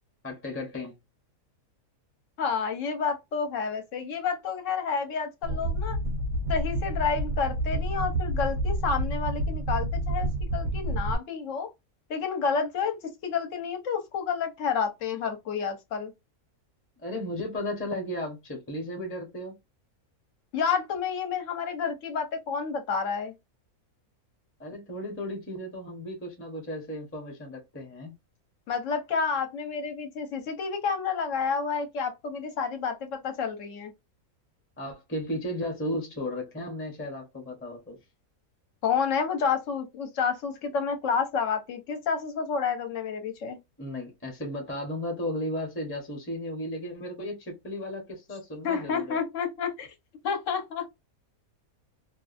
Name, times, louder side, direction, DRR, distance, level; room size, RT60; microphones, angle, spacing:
voice 1, 0.2-1.0 17.0-19.5 24.6-28.1 34.8-38.0 43.8-49.2, left 1 dB, 10° left, 0.7 m, -35 dB
voice 2, 2.4-6.0 6.5-11.7 12.1-16.1 20.5-23.3 28.7-33.9 38.8-43.6 48.6-49.9 50.2-50.9, left 6 dB, 65° left, 1.0 m, -30 dB
sound 1, 5.4-11.2, right 1 dB, 70° right, 1.1 m, -29 dB
2.6 x 2.3 x 2.4 m
omnidirectional pair, 1.6 m